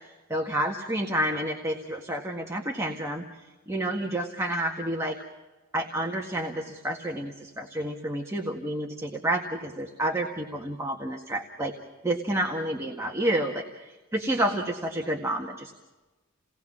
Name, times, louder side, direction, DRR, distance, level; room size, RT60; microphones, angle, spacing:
voice 1, 0.3-3.2 3.7-5.2 5.7-11.7 12.0-15.7, right 1 dB, 15° right, 1 dB, 1.7 m, -29 dB
29.5 x 19.0 x 6.2 m, 1.2 s
head